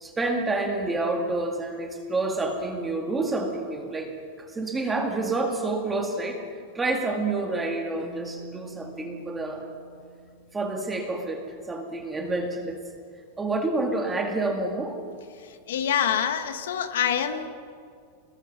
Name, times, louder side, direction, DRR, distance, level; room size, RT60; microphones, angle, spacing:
voice 1, 0.0-4.1 4.4-6.4 6.7-9.6 10.5-12.8 13.4-15.0, right 2 dB, 10° right, 3 dB, 2.1 m, -28 dB
Keyboard (musical), 8.0-11.2, right 4 dB, 10° left, 4.7 m, -47 dB
voice 2, 15.7-17.5, left 8 dB, 85° left, 8 dB, 1.8 m, -25 dB
27.0 x 20.0 x 6.1 m, 2.2 s
supercardioid pair, 175°, 0 cm